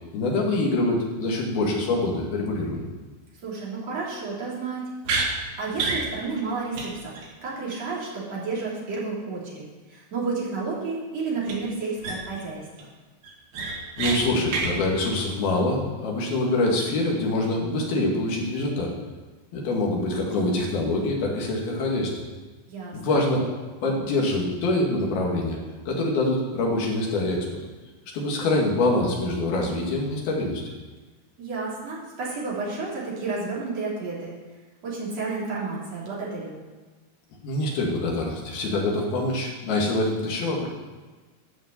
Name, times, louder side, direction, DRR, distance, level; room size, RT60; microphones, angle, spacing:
voice 1, 0.1-2.8 14.0-18.9 19.5-22.1 22.9-23.6 23.8-25.6 25.9-27.5 28.1-30.6 37.4-40.7, left 2 dB, 80° left, -1 dB, 4.1 m, -25 dB
voice 2, 3.4-4.8 5.3-7.2 7.4-12.9 22.7-23.2 31.4-34.3 34.8-36.6, right 4 dB, 45° right, -6 dB, 4.3 m, -31 dB
sound 1, 5.0-5.3 5.8-6.0 6.4-6.5 6.7-6.9 7.1-7.3 11.4-11.5 12.0-12.4 12.8-12.9 13.2-14.2 14.5-14.7, right 4 dB, 90° right, 4.1 m, -27 dB
13.0 x 6.3 x 8.1 m, 1.3 s
omnidirectional pair, 4.3 m